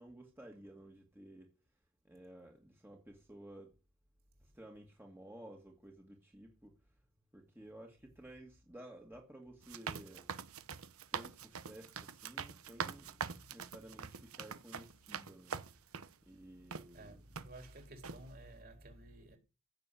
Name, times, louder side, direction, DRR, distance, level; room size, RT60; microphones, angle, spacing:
voice 1, 0.0-1.5 2.0-3.8 4.4-6.8 7.3-10.3 11.1-13.2 13.5-15.6 16.2-17.2, right 1 dB, 10° right, 2.0 m, -54 dB
sound 1, 9.6-16.1 16.7-16.9 17.4-17.7 18.0-18.2, right 6 dB, 85° right, 1.0 m, -44 dB
voice 2, 16.9-19.4, right 1 dB, 45° right, 4.1 m, -53 dB
16.0 x 7.0 x 8.3 m
head